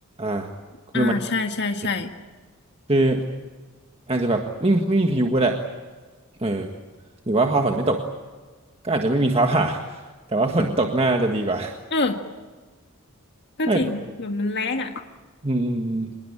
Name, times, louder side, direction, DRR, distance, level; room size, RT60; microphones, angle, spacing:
voice 1, 0.2-0.5 0.9-1.1 2.9-3.2 4.1-5.6 6.4-6.7 7.3-8.0 8.8-10.0 10.3-11.7 13.7-13.8 15.4-16.2, right 2 dB, 25° right, 3 dB, 1.7 m, -22 dB
voice 2, 0.9-2.1 11.9-12.2 13.6-14.9, left 3 dB, 50° left, 4 dB, 1.8 m, -25 dB
26.5 x 21.0 x 8.8 m, 1.3 s
head